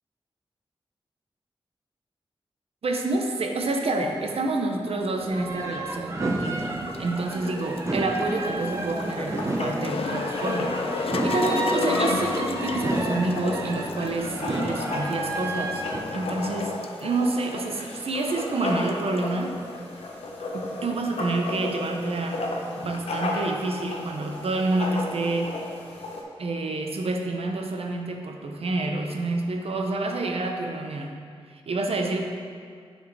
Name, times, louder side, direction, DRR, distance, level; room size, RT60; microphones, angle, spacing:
voice 1, 2.8-15.8 16.1-19.6 20.5-25.6 26.4-31.2 31.5-32.2, right 2 dB, 75° right, 3 dB, 0.7 m, -28 dB
sound 1, 5.2-16.0, right 2 dB, 30° right, 0.6 m, -31 dB
sound 2, 6.3-19.4, left 4 dB, 70° left, 0.4 m, -34 dB
Writing, 8.6-26.2, left 2 dB, 90° left, 0.8 m, -34 dB
9.9 x 4.1 x 3.4 m, 2.1 s
wide cardioid pair, 80°, 10 cm